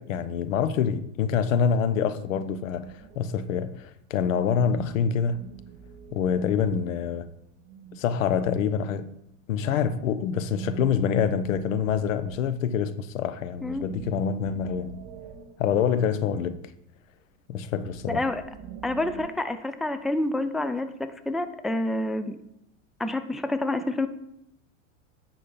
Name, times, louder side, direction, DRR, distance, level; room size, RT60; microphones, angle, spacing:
voice 1, 0.0-5.4 6.1-7.3 8.0-9.2 9.5-15.0 15.6-16.6 17.5-18.2, left 7 dB, 90° left, 0.9 m, -26 dB
sound 1, 2.7-3.8 4.2-8.6 10.3-13.0 13.3-16.6 17.6-19.3, right 7 dB, 60° right, 1.3 m, -45 dB
voice 2, 18.1-18.4 18.8-22.4 23.0-24.1, left 2 dB, ahead, 0.4 m, -28 dB
10.0 x 4.3 x 7.0 m
supercardioid pair, 115°, 38 cm